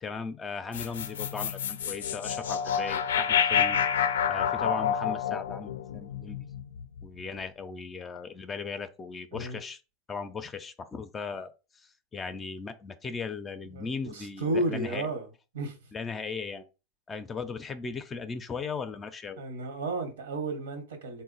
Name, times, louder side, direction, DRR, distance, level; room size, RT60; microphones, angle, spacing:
voice 1, 0.0-3.8 4.3-6.4 7.0-9.8 10.1-15.1 15.9-16.7 17.1-19.4, left 5 dB, 25° left, 0.4 m, -37 dB
sound 1, 0.7-7.0, left 8 dB, 85° left, 0.4 m, -28 dB
voice 2, 13.7-15.3 15.5-15.8 19.4-21.2, right 2 dB, 85° right, 1.1 m, -32 dB
4.0 x 2.1 x 3.9 m
hypercardioid pair, 110°, 0 cm